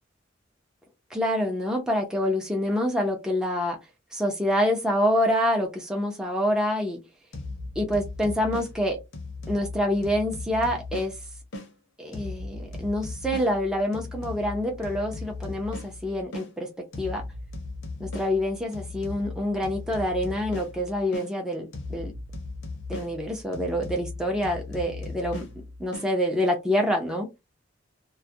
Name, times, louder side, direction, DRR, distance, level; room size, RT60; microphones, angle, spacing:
voice 1, 1.1-3.8 4.1-7.0 7.8-9.0 9.5-11.1 12.0-16.7 17.0-17.2 18.0-22.1 22.9-25.5 25.8-27.3, equal, 5° right, 0.5 m, -26 dB
sound 1, 7.3-11.7 12.1-16.5 16.9-21.3 21.7-26.1, left 2 dB, 75° left, 0.7 m, -38 dB
2.3 x 2.1 x 2.6 m
head